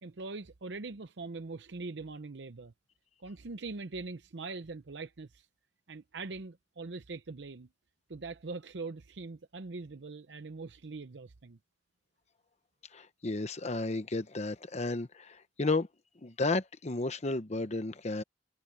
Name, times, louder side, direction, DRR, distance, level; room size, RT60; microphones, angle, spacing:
voice 1, 0.0-2.7 3.2-5.5 5.9-7.7 8.1-11.6, right 3 dB, 70° right, 0.7 m, -42 dB
voice 2, 12.9-15.9 16.2-18.2, left 3 dB, 40° left, 0.9 m, -33 dB
head